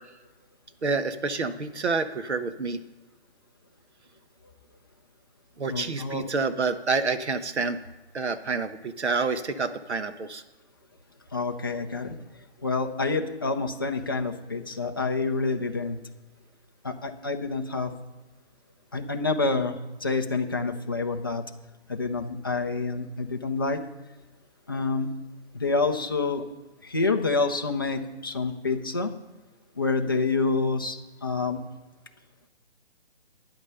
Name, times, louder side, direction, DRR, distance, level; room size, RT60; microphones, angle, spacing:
voice 1, 0.8-2.8 5.6-7.8 8.1-10.4, right 4 dB, 90° right, 9 dB, 1.2 m, -28 dB
voice 2, 5.7-6.2 11.3-12.1 12.6-16.0 16.8-17.9 18.9-21.4 21.9-23.8 24.7-25.1 25.5-26.4 26.8-29.1 29.8-31.6, left 3 dB, 20° left, 3 dB, 0.6 m, -27 dB
12.0 x 9.5 x 5.6 m, 1.1 s
hypercardioid pair, 165°, 33 cm